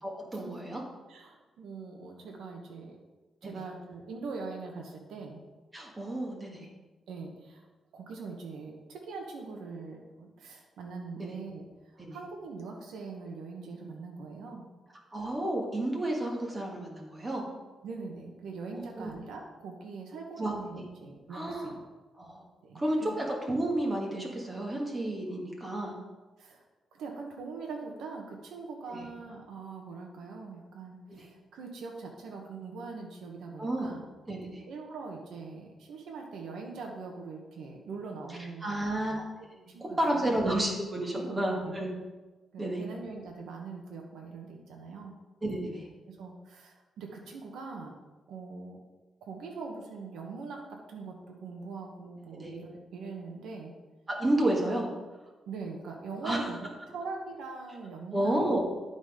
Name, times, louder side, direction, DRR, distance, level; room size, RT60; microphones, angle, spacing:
voice 1, 0.0-0.8 3.4-3.6 5.7-6.7 11.2-11.3 12.0-12.2 15.1-17.4 18.7-19.1 20.4-20.9 21.3-21.7 22.2-22.4 22.7-25.9 28.9-29.0 31.1-31.2 33.6-33.9 34.3-34.6 38.6-39.6 40.0-41.9 42.6-42.8 45.4-45.9 52.3-52.5 54.1-54.9 56.2-56.4 58.1-58.6, right 1 dB, 25° right, -1 dB, 1.7 m, -31 dB
voice 2, 1.1-3.0 3.4-5.4 7.1-7.7 7.9-11.7 11.9-14.7 17.8-21.8 22.6-23.1 26.4-26.6 26.9-34.0 34.6-39.0 39.7-40.4 41.1-41.7 42.5-45.2 46.1-47.9 48.3-48.8 49.2-53.7 55.5-56.6 56.9-58.4, right 4 dB, 85° right, 1 dB, 1.1 m, -42 dB
11.0 x 4.1 x 5.0 m, 1.2 s
cardioid pair, 95°, 0 cm